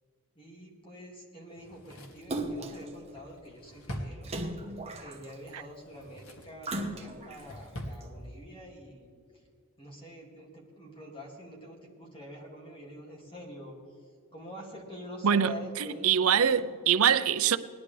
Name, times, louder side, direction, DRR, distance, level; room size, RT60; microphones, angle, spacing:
voice 1, 0.4-4.3 5.0-9.1 9.8-13.8 14.3-16.5, equal, 25° left, 2.3 m, -46 dB
Drawer open or close, 1.5-4.8 5.7-6.6 7.0-8.0 8.3-8.4, equal, 70° left, 1.8 m, -44 dB
Splash splatter, 2.3-2.9 4.2-5.5 6.6-7.4 8.0-8.1, right 1 dB, 30° right, 1.1 m, -36 dB
voice 2, 15.2-17.6, right 8 dB, 70° right, 0.6 m, -24 dB
19.0 x 11.5 x 3.3 m
head